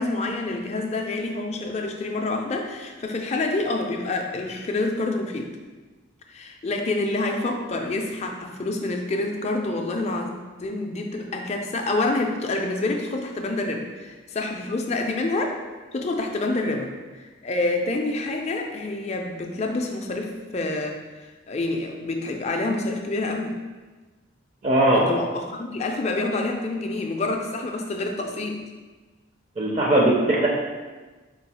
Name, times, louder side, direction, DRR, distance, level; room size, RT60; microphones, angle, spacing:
voice 1, 0.0-5.5 6.3-10.3 10.6-15.6 15.9-23.5 24.9-28.6, left 2 dB, 35° left, 3 dB, 0.4 m, -27 dB
voice 2, 24.6-25.0 29.6-30.5, right 1 dB, 35° right, -2 dB, 0.5 m, -19 dB
4.5 x 2.3 x 4.1 m, 1.3 s
head